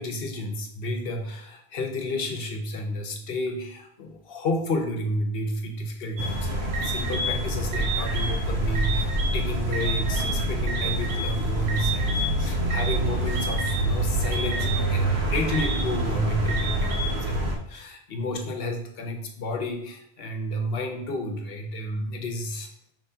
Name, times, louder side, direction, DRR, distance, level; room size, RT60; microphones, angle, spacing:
voice 1, 0.0-22.7, left 1 dB, 70° left, 4 dB, 0.9 m, -31 dB
sound 1, 6.2-17.6, right 1 dB, 90° right, 1.0 m, -26 dB
6.3 x 3.1 x 2.7 m, 0.71 s
omnidirectional pair, 1.0 m